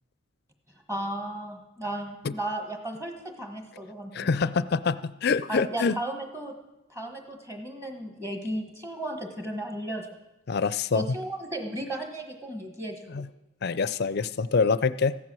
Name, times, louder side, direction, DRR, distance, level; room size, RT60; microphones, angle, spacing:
voice 1, 0.9-3.1 3.4-4.3 5.5-6.6 6.9-10.1 10.9-13.2, right 1 dB, 15° right, 4 dB, 1.3 m, -35 dB
voice 2, 4.1-6.0 10.5-11.0 13.1-13.3 13.6-15.2, left 5 dB, 50° left, 16 dB, 0.4 m, -25 dB
15.0 x 10.5 x 6.2 m, 0.98 s
head